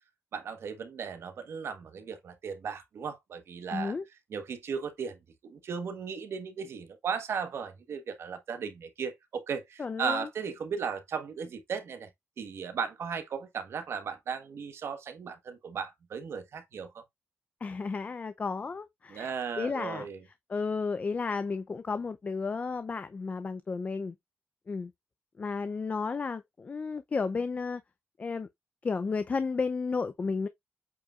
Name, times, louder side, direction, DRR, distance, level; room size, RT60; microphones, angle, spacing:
voice 1, 0.3-3.9 4.3-5.2 5.4-12.1 12.4-17.0 19.1-20.2, right 6 dB, 70° right, 1.2 m, -36 dB
voice 2, 3.7-4.0 9.8-10.3 17.6-20.1 20.5-24.1 24.7-24.9 25.4-27.8 28.2-28.5 28.8-30.5, left 4 dB, 35° left, 0.5 m, -33 dB
8.5 x 4.8 x 2.4 m
wide cardioid pair, 130°, 5 cm